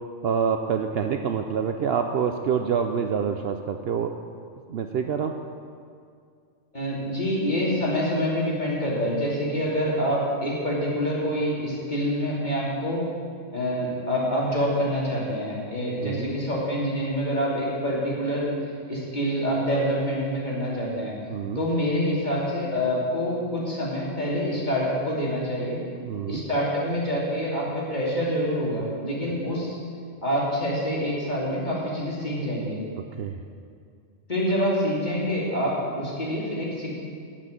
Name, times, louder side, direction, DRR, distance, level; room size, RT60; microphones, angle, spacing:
voice 1, 0.2-4.1 4.7-5.4 16.0-16.3 21.3-21.6 26.0-26.4 33.0-33.4, right 7 dB, 60° right, 6 dB, 0.7 m, -26 dB
voice 2, 6.7-13.0 13.5-18.5 18.9-21.1 21.5-25.8 26.3-29.8 30.2-32.8 34.3-37.0, equal, 35° left, -5 dB, 3.0 m, -26 dB
12.0 x 6.1 x 9.2 m, 2.3 s
omnidirectional pair, 1.3 m